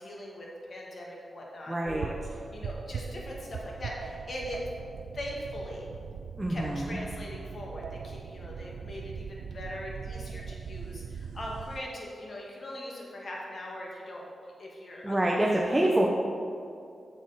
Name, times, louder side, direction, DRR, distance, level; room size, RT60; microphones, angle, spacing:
voice 1, 0.0-4.6 5.1-5.9 6.5-15.6, left 1 dB, 55° left, -3 dB, 2.0 m, -41 dB
voice 2, 1.7-2.1 6.4-7.0 15.0-16.1, right 1 dB, 15° right, -2 dB, 0.9 m, -26 dB
sound 1, 1.9-11.8, right 6 dB, 90° right, 0.4 m, -40 dB
8.8 x 6.7 x 4.2 m, 2.4 s
cardioid pair, 70°, 0 cm